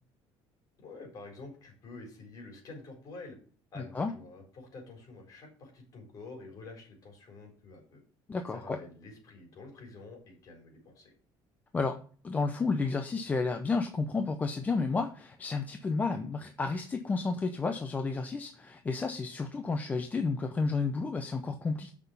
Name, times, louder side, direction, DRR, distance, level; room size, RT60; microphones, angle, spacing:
voice 1, 0.8-3.4 3.7-8.0 8.5-11.1, left 3 dB, 35° left, 0 dB, 4.4 m, -48 dB
voice 2, 3.8-4.1 8.3-8.8 11.7-12.0 12.2-21.9, left 4 dB, 15° left, 6 dB, 0.6 m, -31 dB
7.9 x 6.0 x 6.8 m, 0.43 s
cardioid pair, 170°, 10 cm